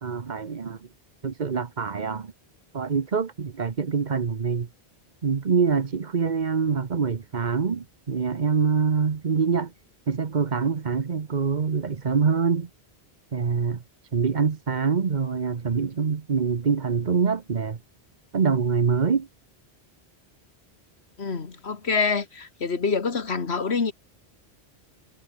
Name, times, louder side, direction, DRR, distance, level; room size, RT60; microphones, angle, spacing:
voice 1, 0.0-0.9 1.2-2.3 2.7-4.7 5.2-9.7 10.1-12.7 13.3-13.8 14.1-17.8 18.3-19.3, right 5 dB, 45° right, 1.1 m, -25 dB
voice 2, 21.2-23.9, left 5 dB, 90° left, 2.1 m, -26 dB
omnidirectional pair, 1.1 m